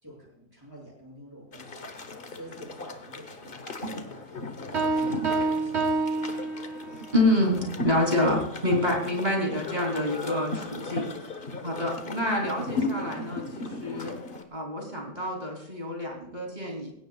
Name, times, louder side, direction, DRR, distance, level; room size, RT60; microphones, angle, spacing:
voice 1, 0.0-2.0 2.3-6.8 7.3-7.6 8.8-9.1, equal, 15° right, -3 dB, 6.8 m, -48 dB
sound 1, 1.5-14.4, left 2 dB, 45° left, 1.4 m, -37 dB
sound 2, 4.7-7.1, right 3 dB, 65° right, 1.7 m, -27 dB
voice 2, 7.1-11.3 11.6-14.2 14.5-16.9, left 1 dB, 35° right, 0 dB, 3.6 m, -27 dB
19.0 x 17.0 x 2.4 m, 0.78 s
omnidirectional pair, 1.3 m